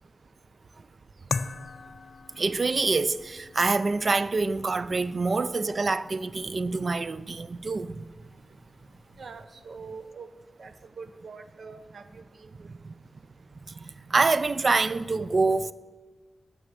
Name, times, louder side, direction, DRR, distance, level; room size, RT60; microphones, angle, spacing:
sound 1, 1.3-10.1, left 4 dB, 65° left, 0.4 m, -42 dB
voice 1, 2.4-8.0 12.7-12.9 13.7-15.7, right 3 dB, 45° right, 0.3 m, -26 dB
voice 2, 9.2-10.3 10.6-12.7, right 4 dB, 70° right, 0.7 m, -44 dB
9.8 x 6.2 x 6.7 m
wide cardioid pair, 95°, 0 cm